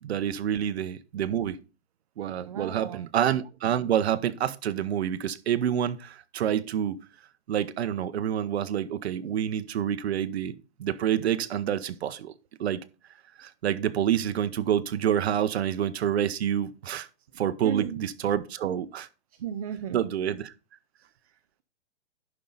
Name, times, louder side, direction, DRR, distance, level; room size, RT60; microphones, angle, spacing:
voice 1, 0.0-1.6 2.2-7.0 7.5-12.3 12.6-12.8 13.4-17.1 17.4-19.1 19.9-20.5, right 10 dB, 65° right, 0.8 m, -28 dB
voice 2, 2.5-3.0 17.6-18.0 19.4-20.0, right 9 dB, 35° right, 0.5 m, -34 dB
11.0 x 5.5 x 3.9 m
hypercardioid pair, 170°, 34 cm